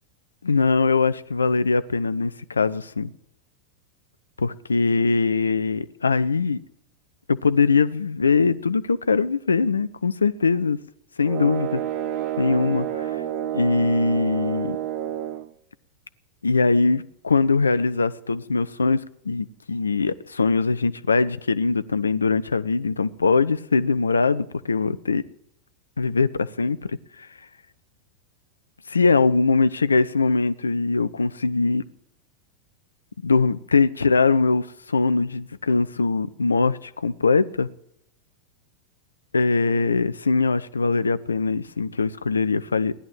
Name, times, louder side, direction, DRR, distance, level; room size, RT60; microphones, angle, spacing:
voice 1, 0.4-3.1 4.4-6.6 7.3-10.8 11.2-11.8 12.4-13.0 13.5-14.8 16.4-25.2 26.0-27.0 28.9-31.8 33.2-37.7 39.3-43.0, left 4 dB, 75° left, 0.6 m, -22 dB
sound 1, 11.2-15.5, right 12 dB, 40° right, 1.0 m, -29 dB
16.0 x 11.0 x 7.5 m
figure-of-eight pair, 90°, 0 cm